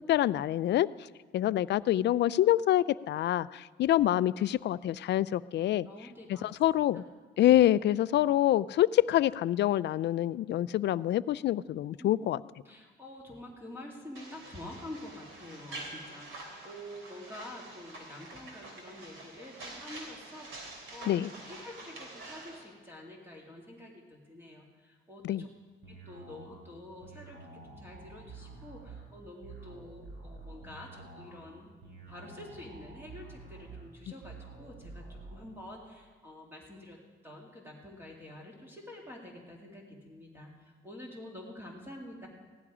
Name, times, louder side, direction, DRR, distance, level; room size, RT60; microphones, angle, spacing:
voice 1, 0.1-0.9 1.3-5.9 6.4-7.0 7.4-12.4 21.1-21.3 25.2-25.4, left 13 dB, 60° left, 18 dB, 0.4 m, -26 dB
voice 2, 5.9-6.5 6.9-7.1 12.0-12.3 12.6-25.5 25.9-31.7 32.1-42.3, left 1 dB, 10° right, -1 dB, 2.4 m, -48 dB
sound 1, 14.2-22.6, right 2 dB, 90° right, 3.2 m, -46 dB
sound 2, 25.8-35.4, right 3 dB, 60° right, 5.0 m, -49 dB
16.0 x 11.5 x 4.9 m, 1.4 s
cardioid pair, 90°, 20 cm